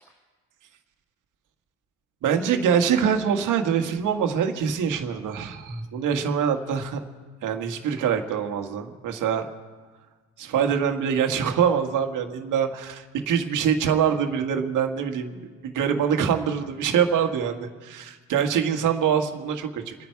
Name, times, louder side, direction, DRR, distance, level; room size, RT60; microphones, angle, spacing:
voice 1, 2.2-7.0 7.4-9.5 10.4-19.9, right 7 dB, 60° right, 5 dB, 1.8 m, -24 dB
29.5 x 10.5 x 4.7 m, 1.4 s
supercardioid pair, 90°, 34 cm